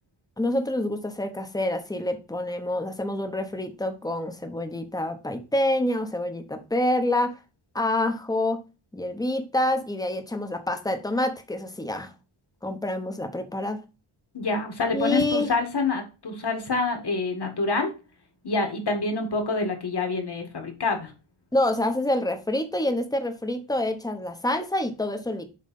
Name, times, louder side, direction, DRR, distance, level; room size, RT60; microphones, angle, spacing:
voice 1, 0.4-7.4 7.7-8.6 8.9-12.1 12.6-13.8 14.9-15.5 21.5-25.4, left 1 dB, 5° left, 0.9 m, -27 dB
voice 2, 14.3-17.9 18.4-21.1, left 3 dB, 50° left, 2.0 m, -27 dB
7.6 x 3.2 x 5.4 m
wide cardioid pair, 145°, 50 cm